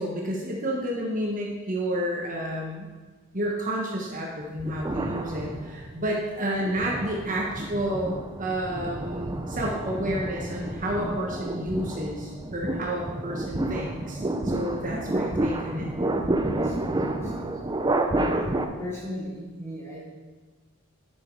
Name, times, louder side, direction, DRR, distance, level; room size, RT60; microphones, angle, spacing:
voice 1, 0.0-2.9 3.3-15.9, right 1 dB, 40° right, -2 dB, 1.2 m, -30 dB
sound 1, 4.6-6.0 6.6-18.6, right 1 dB, 20° right, 0.6 m, -30 dB
voice 2, 13.1-13.7 16.5-17.6 18.1-18.4 18.8-20.1, equal, 10° left, -7 dB, 3.0 m, -38 dB
10.5 x 6.2 x 4.7 m, 1.3 s
head